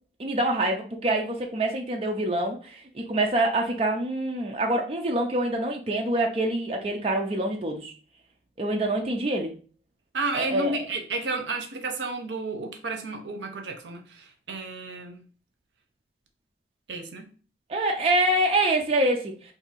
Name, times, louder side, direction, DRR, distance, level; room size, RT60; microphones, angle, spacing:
voice 1, 0.2-7.9 8.6-9.5 10.3-10.8 17.7-19.3, right 1 dB, 30° right, 0.4 m, -25 dB
voice 2, 10.1-15.2 16.9-17.3, right 3 dB, 85° right, 0.6 m, -32 dB
2.7 x 2.6 x 4.0 m
head